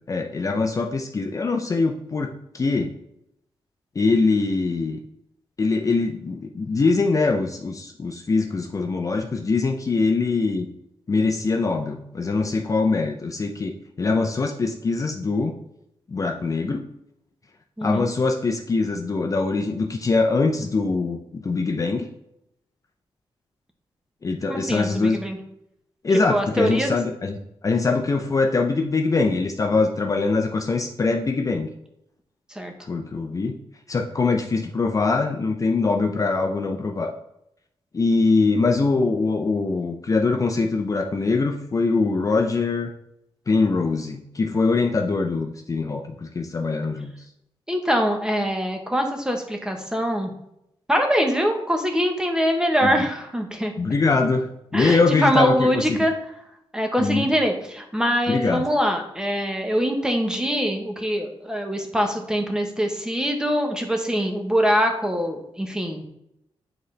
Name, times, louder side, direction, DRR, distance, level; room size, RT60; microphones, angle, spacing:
voice 1, 0.1-2.9 4.0-5.0 5.6-10.7 11.1-13.7 14.0-15.5 16.1-16.8 17.8-22.1 24.2-25.2 26.0-27.3 27.6-31.7 32.9-33.6 33.9-37.1 37.9-42.9 43.5-47.1 52.8-53.0 53.8-56.0 57.0-57.3 58.3-58.6, left 3 dB, 35° left, 3 dB, 0.5 m, -23 dB
voice 2, 24.5-25.4 26.3-26.9 32.5-32.7 47.7-50.3 50.9-53.7 54.7-56.1 56.7-66.1, equal, 5° right, 3 dB, 1.0 m, -23 dB
7.9 x 3.9 x 3.3 m, 0.80 s
wide cardioid pair, 110°, 10 cm